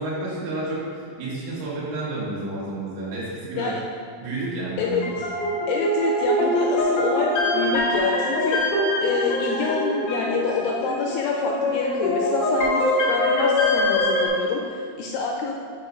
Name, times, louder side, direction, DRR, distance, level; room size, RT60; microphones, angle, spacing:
voice 1, 0.0-3.7 4.2-5.1, right 2 dB, 80° right, -7 dB, 4.2 m, -30 dB
sound 1, 4.7-14.3, left 1 dB, 65° left, 1.5 m, -23 dB
voice 2, 4.8-5.3 5.7-8.6 9.0-15.5, left 5 dB, 85° left, 0 dB, 2.6 m, -27 dB
9.4 x 6.1 x 2.5 m, 2.2 s
omnidirectional pair, 5.6 m